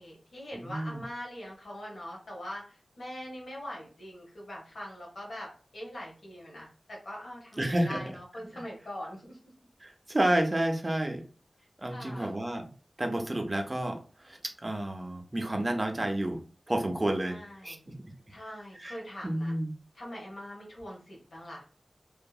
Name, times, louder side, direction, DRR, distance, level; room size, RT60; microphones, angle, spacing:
voice 1, 0.0-9.4 11.8-12.4 17.2-17.9 18.3-19.5 19.9-21.6, equal, 90° left, -3 dB, 1.1 m, -43 dB
voice 2, 0.5-1.0 7.6-8.0 9.8-11.2 11.8-12.6 13.0-14.0 14.2-16.4 16.7-17.4 17.6-17.8 18.8-19.0 19.2-19.7, right 1 dB, 30° right, 4 dB, 0.6 m, -30 dB
2.7 x 2.5 x 2.3 m, 0.39 s
wide cardioid pair, 55°, 0 cm